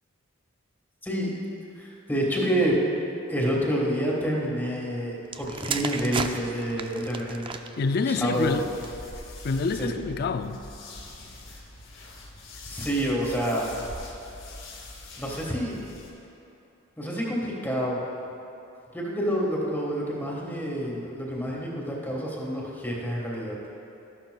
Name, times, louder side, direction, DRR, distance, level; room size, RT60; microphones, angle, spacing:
voice 1, 1.0-1.3 1.8-2.8 3.3-7.5 8.1-8.6 9.8-9.9 12.6-13.7 15.2-15.8 17.0-18.0 18.9-23.6, equal, 10° left, -4 dB, 1.4 m, -28 dB
sound 1, 5.2-9.1 9.9-10.1, right 5 dB, 25° right, 0.3 m, -35 dB
voice 2, 7.8-8.7 9.4-10.6, left 4 dB, 50° left, 9 dB, 0.4 m, -27 dB
sound 2, 8.3-16.1, left 2 dB, 70° left, 2.2 m, -43 dB
13.0 x 11.0 x 2.3 m, 2.8 s
head